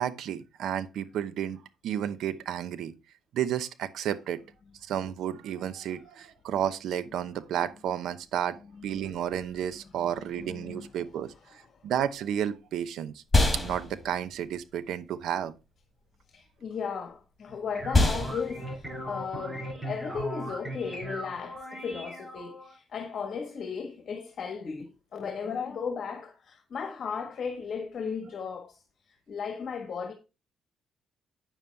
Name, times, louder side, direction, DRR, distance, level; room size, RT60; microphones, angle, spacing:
voice 1, 0.0-2.9 3.3-4.4 4.8-13.2 13.5-15.5, right 9 dB, 75° right, 0.8 m, -32 dB
voice 2, 10.4-10.9 16.3-28.8 29.3-30.1, left 6 dB, 55° left, 1.6 m, -36 dB
sound 1, 12.0-21.6, left 2 dB, 10° left, 3.3 m, -31 dB
sound 2, 17.5-22.7, right 1 dB, 20° right, 4.9 m, -39 dB
9.2 x 7.0 x 3.4 m
cardioid pair, 90°, 0 cm